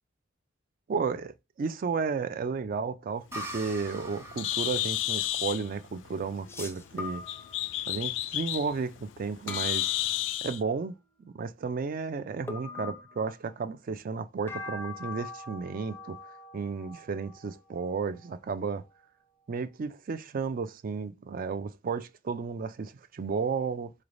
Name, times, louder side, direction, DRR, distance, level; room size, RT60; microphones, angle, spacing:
voice 1, 0.9-1.3 1.6-7.2 7.9-9.9 10.4-11.0 11.3-16.2 16.5-18.8 19.5-23.9, right 5 dB, 50° right, 0.4 m, -33 dB
Bird, 3.3-10.6, left 13 dB, 75° left, 0.3 m, -33 dB
sound 1, 3.3-6.9, equal, 15° right, 1.0 m, -44 dB
sound 2, 3.9-4.2 6.5-8.0 9.5-10.7 12.5-13.7 14.5-19.1, left 3 dB, 15° left, 0.5 m, -43 dB
3.9 x 3.2 x 2.5 m
head